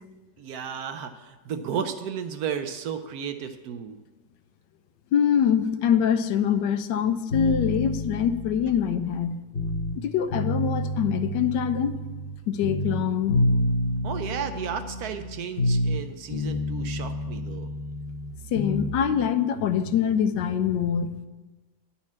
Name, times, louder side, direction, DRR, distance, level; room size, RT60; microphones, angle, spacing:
voice 1, 0.4-4.0 14.0-17.7, right 7 dB, 70° right, 8 dB, 1.0 m, -33 dB
voice 2, 5.1-9.4 10.0-11.9 12.5-13.4 18.5-21.1, left 8 dB, 85° left, 10 dB, 1.2 m, -24 dB
sound 1, 7.3-10.0 10.3-12.4 12.6-16.0 16.3-18.9, left 1 dB, 45° left, 0.8 m, -28 dB
10.5 x 4.3 x 7.2 m, 1.2 s
omnidirectional pair, 1.9 m